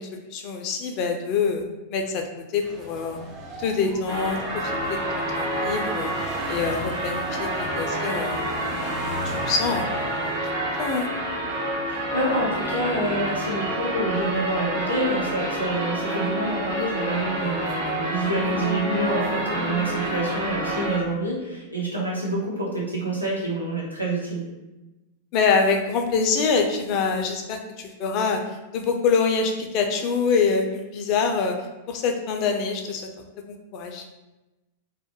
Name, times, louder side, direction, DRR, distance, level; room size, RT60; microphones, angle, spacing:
voice 1, 0.0-1.6 1.9-2.2 2.5-3.2 3.6-5.0 5.3-6.1 6.5-8.4 9.1-9.8 10.8-11.1 25.3-28.4 28.7-31.5 31.9-34.0, left 5 dB, 40° left, 3 dB, 0.4 m, -25 dB
sound 1, 2.6-10.4, right 1 dB, 30° right, 0.5 m, -38 dB
sound 2, 4.1-21.0, right 1 dB, 60° right, 1.0 m, -28 dB
voice 2, 11.9-24.4, right 2 dB, 90° right, -6 dB, 0.7 m, -27 dB
2.3 x 2.0 x 2.9 m, 1.0 s
figure-of-eight pair, 95°, 0 cm